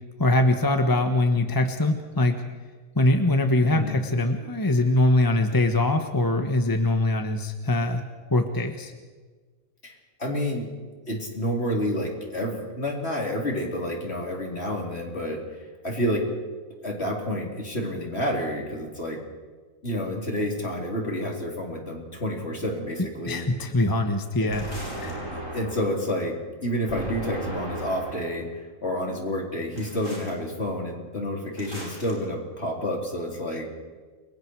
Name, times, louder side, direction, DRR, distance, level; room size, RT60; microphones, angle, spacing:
voice 1, 0.2-2.4 2.9-8.0 8.3-8.9 23.3-25.2, left 2 dB, 15° left, 6 dB, 1.3 m, -23 dB
voice 2, 9.8-10.7 11.1-15.4 15.8-16.3 16.8-19.2 19.8-23.5 24.4-24.6 25.5-33.7, equal, 40° left, 0 dB, 4.3 m, -29 dB
sound 1, 24.5-26.0 26.9-28.3 29.8-30.3 31.6-32.1, right 1 dB, 15° right, 8.2 m, -36 dB
29.5 x 23.5 x 4.8 m, 1.4 s
omnidirectional pair, 1.6 m